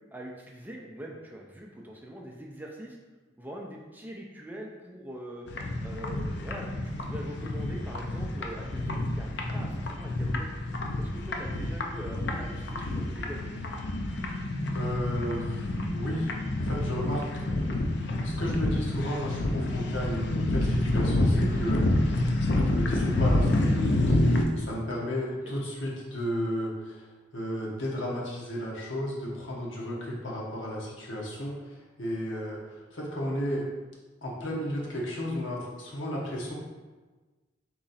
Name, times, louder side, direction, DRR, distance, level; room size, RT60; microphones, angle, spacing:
voice 1, 0.1-3.0 3.4-5.5 5.8-10.5 11.0-13.5 25.3-25.5, equal, 10° right, -1 dB, 0.4 m, -43 dB
sound 1, 5.5-24.4, left 1 dB, 60° left, 0.4 m, -28 dB
voice 2, 14.7-16.3 16.6-22.1 22.6-24.2 24.5-33.7 34.2-36.5, equal, 80° left, -3 dB, 1.0 m, -34 dB
3.6 x 3.0 x 4.0 m, 1.3 s
head